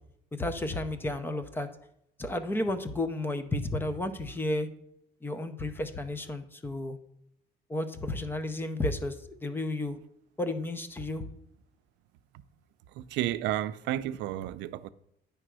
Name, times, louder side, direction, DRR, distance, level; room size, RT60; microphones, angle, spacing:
voice 1, 0.3-1.7 2.2-4.7 5.2-7.0 7.7-9.2 9.4-10.0 10.4-11.2, left 1 dB, 10° left, 0.5 m, -32 dB
voice 2, 13.0-14.9, right 13 dB, 85° right, 0.4 m, -32 dB
9.9 x 3.4 x 6.1 m
cardioid pair, 165°, 18 cm